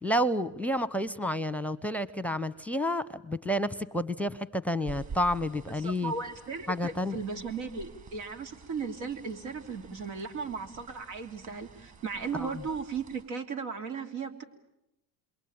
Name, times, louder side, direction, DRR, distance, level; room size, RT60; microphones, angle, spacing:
voice 1, 0.0-6.1 6.7-7.1 12.4-12.6, equal, 5° left, 19 dB, 0.9 m, -30 dB
sound 1, 4.9-13.2, right 5 dB, 35° right, 7.4 m, -49 dB
voice 2, 5.7-14.4, right 5 dB, 70° right, 5 dB, 3.2 m, -36 dB
28.0 x 22.5 x 8.8 m, 0.87 s
supercardioid pair, 90°, 49 cm